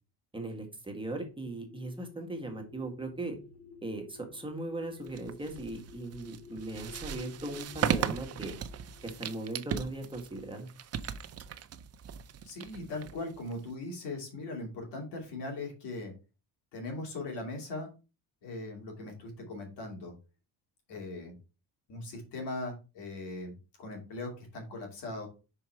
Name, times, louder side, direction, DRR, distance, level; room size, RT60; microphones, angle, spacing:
voice 1, 0.3-3.4 3.8-8.6 9.0-10.7, right 2 dB, 10° right, 2 dB, 1.6 m, -38 dB
sound 1, 1.2-9.5, left 4 dB, 40° left, 2.8 m, -52 dB
sound 2, 5.1-13.7, right 9 dB, 40° right, 0.6 m, -37 dB
voice 2, 12.4-16.1 16.7-17.9 18.4-20.1 20.9-21.4 21.9-25.3, left 2 dB, 85° left, 1 dB, 2.6 m, -39 dB
5.7 x 4.8 x 4.4 m, 0.32 s
cardioid pair, 115°, 40 cm